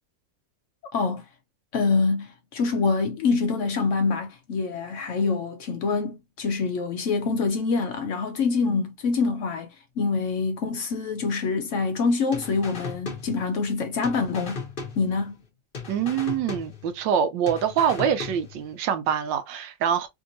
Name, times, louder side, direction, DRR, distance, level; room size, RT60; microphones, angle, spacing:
voice 1, 0.9-1.2 1.7-9.7 10.0-14.6 15.0-15.4, left 4 dB, 80° left, 0.6 m, -25 dB
sound 1, 12.3-13.8 14.0-15.5 15.7-17.2 17.5-18.8, left 4 dB, 40° left, 0.7 m, -37 dB
voice 2, 15.9-20.1, right 8 dB, 80° right, 1.4 m, -25 dB
3.4 x 2.7 x 2.6 m
omnidirectional pair, 2.0 m